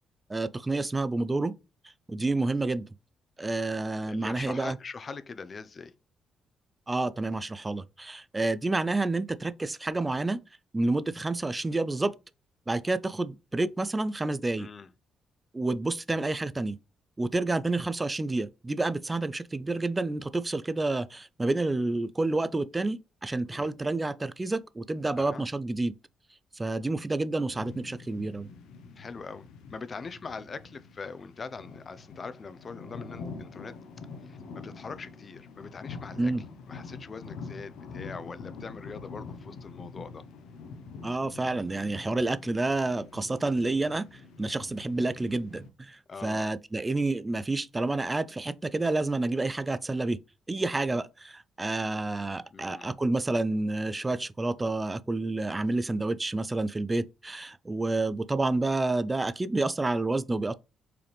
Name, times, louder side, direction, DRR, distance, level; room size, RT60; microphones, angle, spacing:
voice 1, 0.3-1.5 2.1-2.9 3.4-4.8 6.9-10.4 10.7-12.1 12.7-14.7 15.5-16.8 17.2-25.9 26.5-28.5 36.2-36.4 41.0-50.2 50.5-60.5, right 2 dB, 20° right, 0.4 m, -29 dB
voice 2, 4.1-5.9 14.6-14.9 23.4-23.7 25.2-25.4 29.0-33.8 34.2-36.3 36.7-40.2 46.1-46.5 52.5-52.9, left 4 dB, 40° left, 0.5 m, -42 dB
sound 1, 27.5-45.7, left 4 dB, 85° left, 0.8 m, -45 dB
4.8 x 3.5 x 3.1 m
cardioid pair, 90°, 0 cm